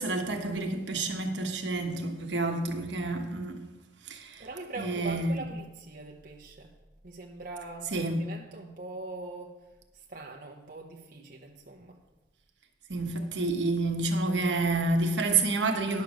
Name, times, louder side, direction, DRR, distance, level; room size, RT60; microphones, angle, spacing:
voice 1, 0.0-3.6 4.0-4.4 4.8-5.4 7.9-8.2 12.9-16.0, right 3 dB, 75° right, 1.2 m, -29 dB
voice 2, 4.4-6.7 7.0-9.5 10.1-12.0, right 2 dB, 50° right, 0.9 m, -42 dB
10.5 x 6.7 x 6.4 m
head